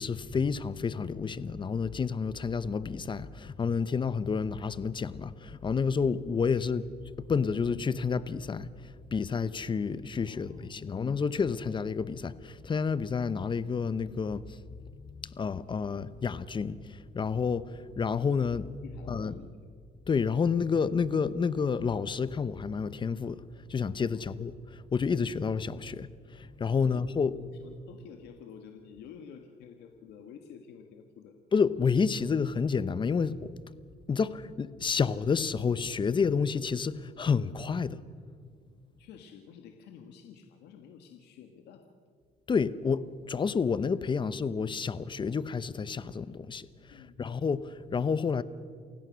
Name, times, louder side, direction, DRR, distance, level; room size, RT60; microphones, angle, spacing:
voice 1, 0.0-6.9 7.2-14.6 14.9-18.7 19.1-19.3 20.1-23.4 23.7-27.3 31.5-33.5 34.1-38.0 42.5-48.4, left 5 dB, 30° left, 0.9 m, -30 dB
voice 2, 10.2-11.1 18.8-19.5 24.1-24.3 26.8-31.3 39.0-41.9 46.9-47.2, left 7 dB, 80° left, 1.6 m, -50 dB
28.5 x 16.5 x 6.3 m
cardioid pair, 110°, 17 cm